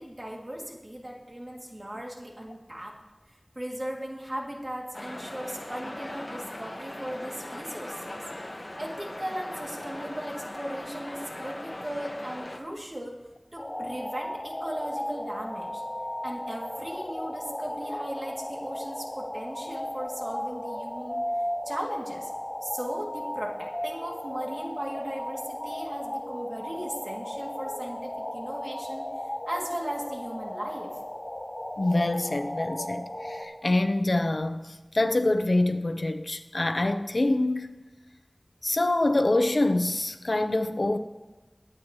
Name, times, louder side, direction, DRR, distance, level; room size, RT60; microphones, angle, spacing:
voice 1, 0.0-3.0 3.5-8.2 8.5-13.1 13.5-15.8 16.2-21.2 21.6-22.3 22.6-31.0, equal, 45° right, 2.8 m, -37 dB
sound 1, 4.9-12.6, left 1 dB, 60° left, 1.5 m, -39 dB
sound 2, 13.6-33.4, left 1 dB, 45° left, 4.1 m, -35 dB
voice 2, 31.8-37.8 38.6-41.0, left 2 dB, 85° left, 0.8 m, -25 dB
23.0 x 8.9 x 3.2 m
wide cardioid pair, 40°, 0 cm